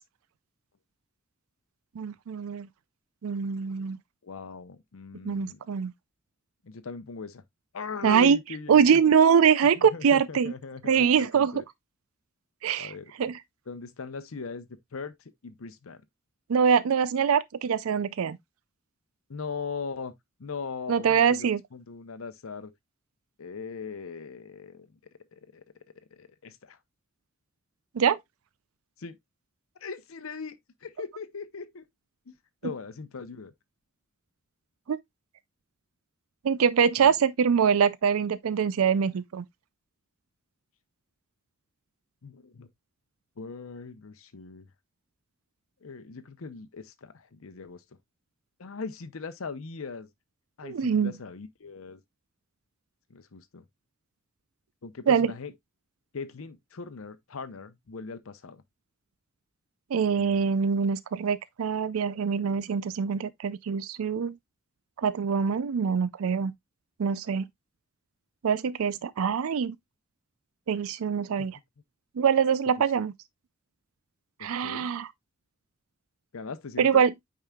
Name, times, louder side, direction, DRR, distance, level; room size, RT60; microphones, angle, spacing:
voice 1, 2.0-2.7 3.2-4.0 5.2-5.9 8.0-8.4 8.7-10.5 10.8-11.6 12.6-12.9 13.2-13.4 16.5-18.4 20.9-21.6 28.0-28.2 34.9-35.0 36.4-39.4 50.6-51.1 55.1-55.3 59.9-64.3 65.0-66.5 67.0-67.5 68.4-69.7 70.7-71.6 72.2-73.1 74.4-75.1 76.8-77.1, right 7 dB, 80° right, 0.4 m, -24 dB
voice 2, 4.2-5.6 6.6-7.4 7.7-9.0 9.7-11.6 12.8-13.1 13.7-15.1 15.4-16.0 19.3-20.1 20.4-22.7 23.4-24.9 25.3-25.6 26.1-26.8 29.0-29.2 29.8-30.6 30.8-31.8 32.3-32.4 32.6-33.5 37.0-37.1 42.2-42.7 43.4-44.7 45.8-47.8 48.6-50.1 50.6-52.0 53.1-53.6 54.8-55.5 56.1-58.6 60.2-60.5 62.5-63.1 71.4-71.5 74.4-74.9 76.3-77.0, left 4 dB, 70° left, 0.7 m, -40 dB
9.0 x 4.8 x 2.3 m
head